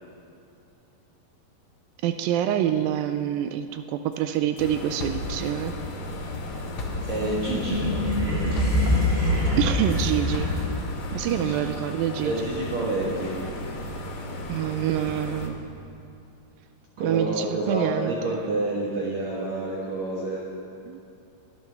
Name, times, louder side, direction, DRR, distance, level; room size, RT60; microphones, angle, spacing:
voice 1, 2.0-5.7 8.5-8.6 9.6-10.5 11.1-12.5 14.5-15.6 17.0-18.3 20.9-21.0, right 10 dB, 85° right, 9 dB, 2.3 m, -26 dB
sound 1, 4.1-4.7 5.0-11.0, left 3 dB, 55° left, 1.9 m, -38 dB
sound 2, 4.6-15.5, left 1 dB, 85° left, 3.3 m, -35 dB
sound 3, 6.8-11.1, left 1 dB, 30° right, 0.9 m, -25 dB
voice 2, 7.1-8.1 11.2-11.5 12.2-13.4 14.0-14.2 17.0-20.4, right 2 dB, 60° right, -5 dB, 2.5 m, -29 dB
23.5 x 10.5 x 3.5 m, 2.7 s
omnidirectional pair, 4.1 m